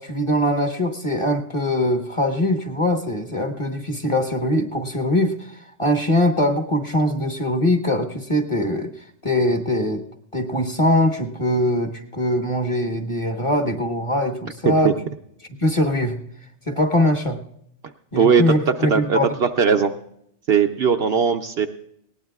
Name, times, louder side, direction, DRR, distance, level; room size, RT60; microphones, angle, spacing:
voice 1, 0.0-8.9 9.2-10.0 10.3-14.9 15.6-16.2 16.7-17.4 18.1-19.3, left 1 dB, 25° left, 5 dB, 1.2 m, -22 dB
voice 2, 18.9-19.9 20.5-21.7, right 6 dB, 60° right, 5 dB, 0.8 m, -18 dB
19.5 x 18.0 x 2.4 m, 0.73 s
omnidirectional pair, 1.3 m